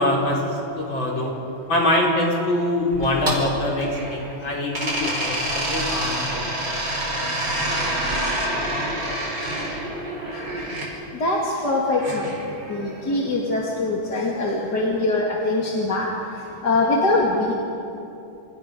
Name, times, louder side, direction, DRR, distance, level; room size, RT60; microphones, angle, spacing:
voice 1, 0.0-1.4 1.7-6.5, left 1 dB, 70° left, -3 dB, 5.4 m, -24 dB
sound 1, 2.9-4.3 4.7-10.9 12.0-13.1, right 1 dB, 60° right, 5.6 m, -27 dB
voice 2, 11.2-12.3 12.7-16.1 16.6-17.5, left 2 dB, 55° left, -3 dB, 3.0 m, -22 dB
29.5 x 28.5 x 5.3 m, 2.8 s
omnidirectional pair, 2.2 m